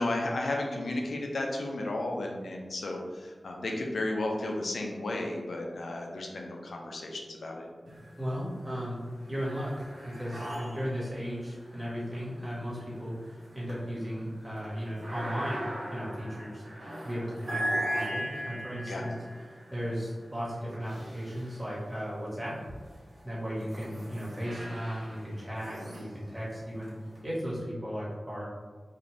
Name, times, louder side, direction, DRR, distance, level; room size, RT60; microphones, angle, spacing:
voice 1, 0.0-7.7 18.9-19.0, left 2 dB, 85° left, 0 dB, 0.4 m, -33 dB
sound 1, 7.9-8.5 8.9-22.1 22.7-27.2, equal, 75° right, 1.1 m, -39 dB
voice 2, 8.2-9.0 9.3-15.6 15.9-19.1 19.5-22.6 23.2-26.9 27.2-28.4, equal, 20° right, -8 dB, 1.4 m, -36 dB
2.5 x 2.5 x 3.2 m, 1.5 s
cardioid pair, 45°, 0 cm